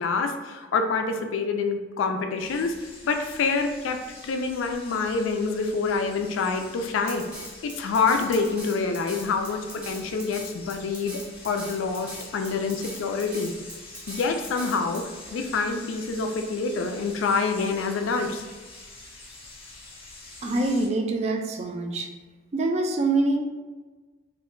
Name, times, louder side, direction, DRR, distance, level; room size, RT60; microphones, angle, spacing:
voice 1, 0.0-2.7 3.0-7.2 7.6-11.2 11.4-13.5 14.1-18.4, left 4 dB, 85° left, 5 dB, 0.3 m, -26 dB
sound 1, 2.4-20.9, left 2 dB, 30° left, 0.6 m, -46 dB
Drum kit, 7.1-15.0, equal, 5° right, 0.6 m, -40 dB
voice 2, 20.4-22.1 22.5-23.4, right 2 dB, 35° right, 3 dB, 0.3 m, -25 dB
2.5 x 2.2 x 3.6 m, 1.3 s
head